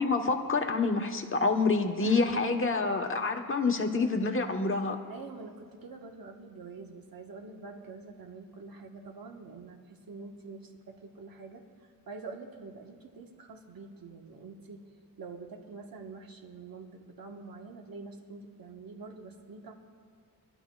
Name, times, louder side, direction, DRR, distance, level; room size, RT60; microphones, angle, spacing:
voice 1, 0.0-5.0, left 3 dB, 35° left, 4 dB, 1.1 m, -27 dB
voice 2, 5.1-14.9 15.2-19.7, right 4 dB, 70° right, 3 dB, 1.3 m, -46 dB
25.5 x 11.5 x 2.3 m, 2.1 s
wide cardioid pair, 115°, 36 cm